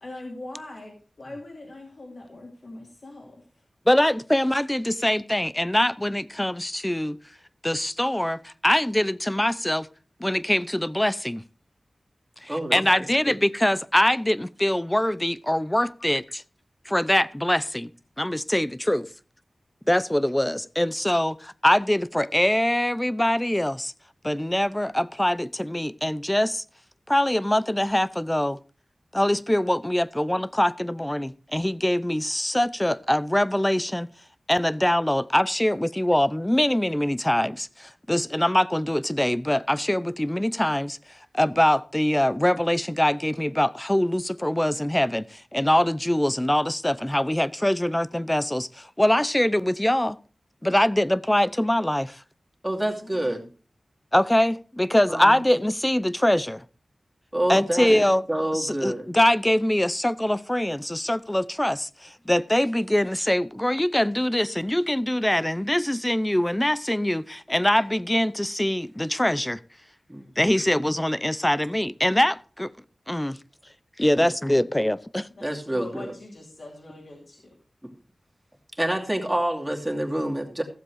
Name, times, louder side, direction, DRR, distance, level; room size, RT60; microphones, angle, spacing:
voice 1, 0.0-3.6 16.0-16.1 52.8-53.5 75.4-77.5, left 2 dB, 65° left, 2.9 m, -42 dB
voice 2, 3.9-7.2 7.6-9.9 10.2-11.4 12.4-16.2 16.9-17.9 18.2-19.1 19.9-23.9 24.2-26.6 27.1-28.6 29.1-34.1 34.5-41.0 41.3-50.2 50.6-52.2 54.1-56.6 57.5-58.2 58.5-69.6 70.4-72.7 73.1-73.4 74.0-75.3, left 1 dB, 15° left, 0.6 m, -23 dB
voice 3, 12.5-12.8 13.3-13.4 52.6-53.4 55.1-55.4 57.3-58.0 58.3-59.1 70.1-70.3 74.2-74.3 74.6-74.7 75.4-76.1 78.8-80.6, right 1 dB, 15° right, 2.7 m, -27 dB
15.0 x 7.5 x 4.8 m
wide cardioid pair, 70°, 0 cm